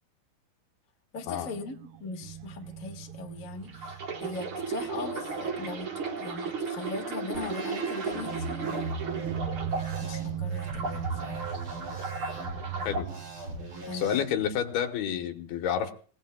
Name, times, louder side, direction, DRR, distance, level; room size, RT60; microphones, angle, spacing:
voice 1, 1.1-5.9 6.2-8.8 10.0-11.5 13.9-14.2, left 3 dB, 35° left, 2 dB, 1.4 m, -40 dB
sound 1, 1.2-6.7 6.9-7.1 8.3-14.8, right 11 dB, 85° right, 2.9 m, -40 dB
sound 2, 3.7-10.2 10.6-13.1 13.7-13.9, right 4 dB, 50° right, 1.6 m, -35 dB
sound 3, 7.3-14.2, right 2 dB, 30° right, 6.6 m, -39 dB
voice 2, 13.9-15.9, left 9 dB, 80° left, 6 dB, 3.2 m, -29 dB
27.5 x 17.0 x 2.3 m, 0.42 s
omnidirectional pair, 4.5 m